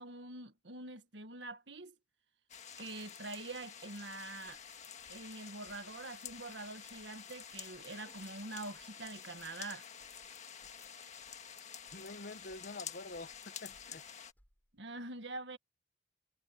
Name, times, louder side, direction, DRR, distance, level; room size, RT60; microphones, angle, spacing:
voice 1, 0.0-2.0 2.8-4.6 5.1-9.8 14.7-15.6, right 2 dB, 80° right, 1.8 m, -45 dB
sound 1, 2.5-14.3, left 8 dB, 40° left, 1.7 m, -50 dB
sound 2, 4.4-15.0, equal, 10° left, 7.9 m, -74 dB
voice 2, 11.9-14.0, left 2 dB, 55° left, 1.0 m, -47 dB
head